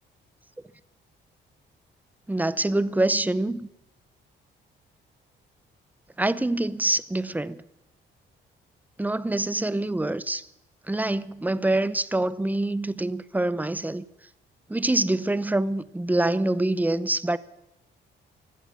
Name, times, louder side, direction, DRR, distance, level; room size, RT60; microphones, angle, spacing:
voice 1, 2.3-3.7 6.2-7.6 9.0-10.5 10.9-14.0 14.7-17.4, right 2 dB, 10° right, 0.7 m, -25 dB
16.5 x 12.0 x 6.9 m
cardioid pair, 90°, 20 cm